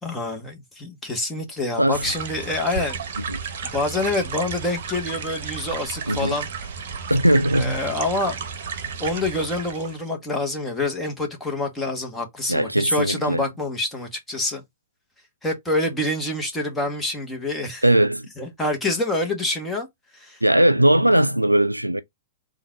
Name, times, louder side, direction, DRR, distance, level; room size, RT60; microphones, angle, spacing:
voice 1, 0.0-3.0 3.6-6.5 7.6-8.4 9.0-14.6 15.4-17.8 18.4-19.9 20.1-20.4, left 2 dB, 10° left, 1.3 m, -26 dB
sound 1, 1.9-10.1, right 6 dB, 50° right, 0.9 m, -33 dB
voice 2, 6.1-6.4 7.1-7.8 12.5-13.5 17.8-18.3 20.4-22.0, right 1 dB, 85° right, 0.4 m, -19 dB
3.8 x 2.5 x 4.5 m
figure-of-eight pair, 105°, 0 cm